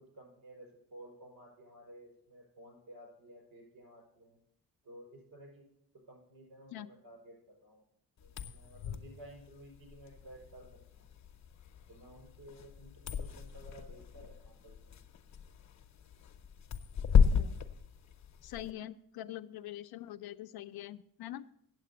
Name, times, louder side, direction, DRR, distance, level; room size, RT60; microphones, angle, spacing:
voice 1, 0.1-4.4 4.8-5.7 6.1-7.3 7.6-7.8 8.2-10.7 10.9-11.1 11.9-15.0, right 1 dB, 70° right, 0 dB, 5.6 m, -54 dB
sound 1, 8.2-18.7, left 7 dB, 50° left, 0.8 m, -33 dB
voice 2, 18.4-21.5, left 13 dB, 85° left, 9 dB, 0.5 m, -44 dB
9.0 x 7.5 x 6.8 m, 0.72 s
wide cardioid pair, 150°, 36 cm